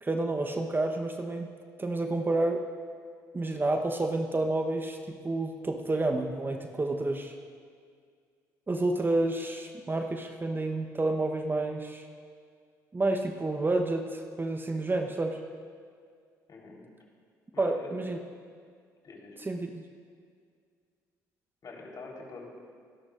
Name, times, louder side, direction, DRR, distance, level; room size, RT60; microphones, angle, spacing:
voice 1, 0.0-1.5 1.8-2.6 3.3-7.3 8.7-12.1 12.9-15.4 17.6-18.2 19.4-19.8, right 2 dB, 25° right, 4 dB, 1.0 m, -29 dB
voice 2, 16.5-16.8 17.5-17.9 19.0-19.4 21.6-22.5, left 3 dB, 45° left, -2 dB, 4.0 m, -45 dB
24.5 x 11.5 x 2.6 m, 2.1 s
hypercardioid pair, 55°, 9 cm